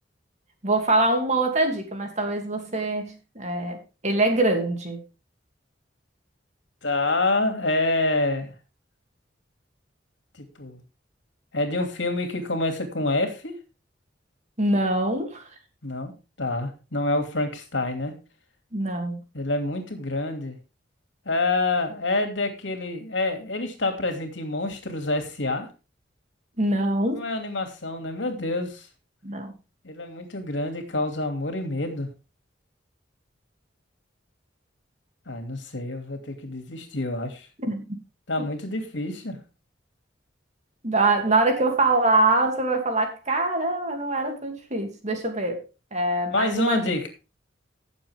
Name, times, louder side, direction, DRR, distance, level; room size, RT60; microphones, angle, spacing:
voice 1, 0.6-5.0 14.6-15.4 18.7-19.2 26.6-27.2 29.2-29.5 37.6-37.8 40.8-45.6 45.9-46.8, right 2 dB, 40° right, 4 dB, 2.7 m, -24 dB
voice 2, 6.8-8.5 10.6-10.8 11.5-13.5 15.8-16.1 16.4-18.1 19.3-20.6 21.3-25.7 27.1-28.8 29.8-32.1 35.3-37.5 38.3-39.4 46.3-47.1, left 2 dB, 80° left, 6 dB, 2.8 m, -27 dB
16.5 x 7.2 x 3.6 m, 0.30 s
head